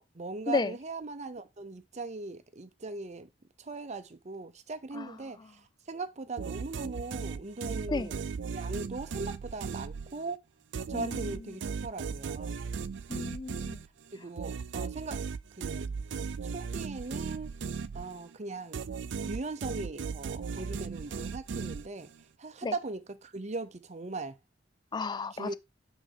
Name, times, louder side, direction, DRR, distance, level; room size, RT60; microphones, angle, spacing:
voice 1, 0.0-3.3 3.6-5.6 5.9-8.2 8.5-10.4 10.9-12.6 14.1-15.2 15.6-15.9 16.4-17.5 17.9-18.8 19.2-22.1 22.4-24.4 25.3-25.6, right 3 dB, 40° right, 0.7 m, -39 dB
sound 1, 6.4-10.3 10.7-18.4 18.7-22.2, right 5 dB, 70° right, 0.4 m, -37 dB
voice 2, 10.9-11.2 13.1-13.8 22.6-22.7 24.9-25.5, left 4 dB, 25° left, 0.3 m, -32 dB
6.1 x 4.8 x 4.0 m
head